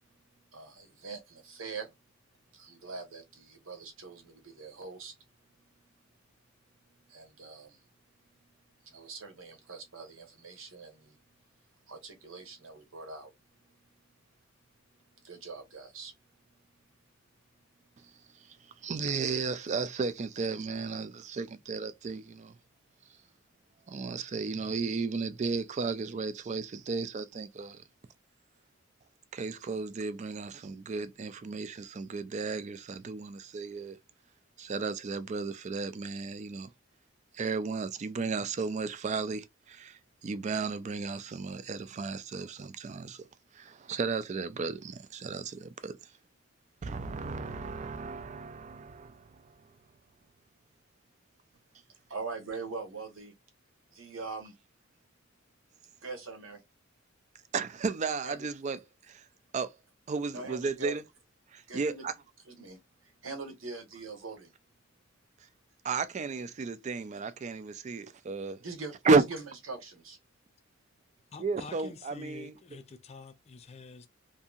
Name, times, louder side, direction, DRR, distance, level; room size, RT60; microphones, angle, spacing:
voice 1, 0.5-1.9 2.5-5.1 7.1-7.8 8.4-8.5 8.8-11.2 11.9-13.3 15.2-16.1 52.1-53.3 53.9-54.5 56.0-56.6 58.2-58.5 60.3-61.0 61.7-62.1 62.5-64.5 68.6-69.4 69.7-70.2, right 4 dB, 75° right, 1.0 m, -43 dB
voice 2, 18.8-22.5 23.9-27.8 29.3-34.0 34.6-36.7 37.3-43.2 43.5-46.0 46.8-49.6 57.5-58.8 59.1-59.3 59.5-59.7 60.1-61.0 61.5-62.1 65.8-68.6 69.0-69.2 71.4-72.6, right 4 dB, 35° right, 0.3 m, -33 dB
voice 3, 71.3-74.1, left 4 dB, 30° left, 0.4 m, -47 dB
2.7 x 2.6 x 2.3 m
head